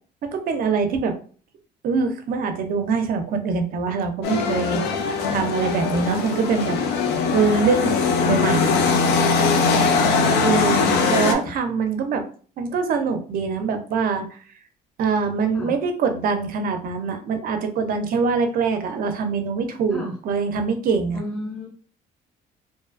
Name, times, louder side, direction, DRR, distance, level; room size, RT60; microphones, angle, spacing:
voice 1, 0.2-1.2 1.8-4.8 5.3-6.8 7.3-8.0 8.2-8.8 10.4-10.9 11.1-12.2 12.6-14.4 15.0-21.2, right 5 dB, 60° right, 6 dB, 0.5 m, -23 dB
sound 1, 4.2-11.3, left 4 dB, 80° left, 0.5 m, -21 dB
voice 2, 10.7-11.3 15.5-15.7 19.9-20.1 21.1-21.7, left 1 dB, 5° left, -2 dB, 0.7 m, -32 dB
2.6 x 2.3 x 2.4 m, 0.43 s
cardioid pair, 110°, 17 cm